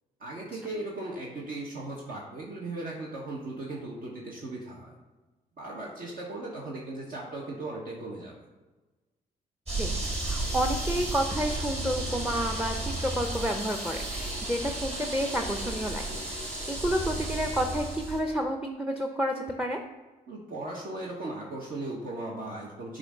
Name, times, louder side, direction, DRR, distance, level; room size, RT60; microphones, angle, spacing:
voice 1, 0.2-4.9 5.6-8.3 20.3-23.0, right 2 dB, 55° right, -4 dB, 1.2 m, -37 dB
sound 1, 9.7-18.2, right 2 dB, 40° right, 2.0 m, -33 dB
voice 2, 9.8-16.0 16.3-19.8, equal, 5° right, 3 dB, 0.6 m, -30 dB
6.7 x 2.6 x 5.4 m, 1.2 s
supercardioid pair, 60°, 17 cm